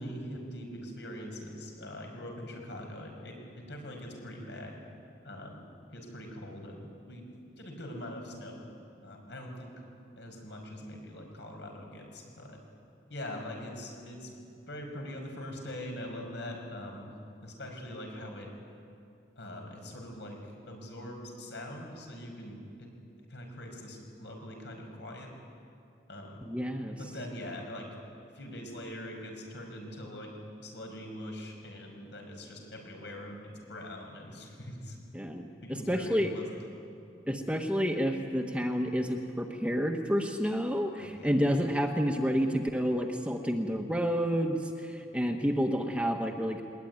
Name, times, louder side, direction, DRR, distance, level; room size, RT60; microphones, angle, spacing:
voice 1, 0.0-4.8 5.2-5.6 5.9-7.3 7.6-8.7 9.0-9.7 10.2-12.6 13.1-14.3 14.7-17.2 17.4-18.5 19.4-22.9 23.3-25.3 26.1-26.4 27.0-28.0 28.3-30.4 30.6-35.0 35.6-36.6 41.0-41.3, left 1 dB, 70° left, 2 dB, 5.5 m, -42 dB
voice 2, 26.4-26.9 35.1-36.3 37.3-46.6, equal, 5° right, 3 dB, 1.2 m, -29 dB
21.5 x 20.5 x 9.6 m, 2.5 s
head